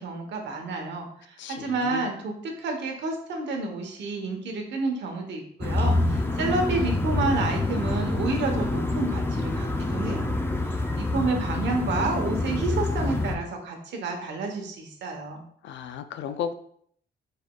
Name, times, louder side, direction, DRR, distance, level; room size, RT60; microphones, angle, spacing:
voice 1, 0.0-10.3 10.7-15.4, right 3 dB, 75° right, 3 dB, 1.0 m, -30 dB
voice 2, 1.4-2.1 15.6-16.5, left 8 dB, 80° left, 10 dB, 0.5 m, -34 dB
sound 1, 5.6-13.4, left 2 dB, 10° left, 0.5 m, -26 dB
4.8 x 4.2 x 2.3 m, 0.63 s
cardioid pair, 120°, 19 cm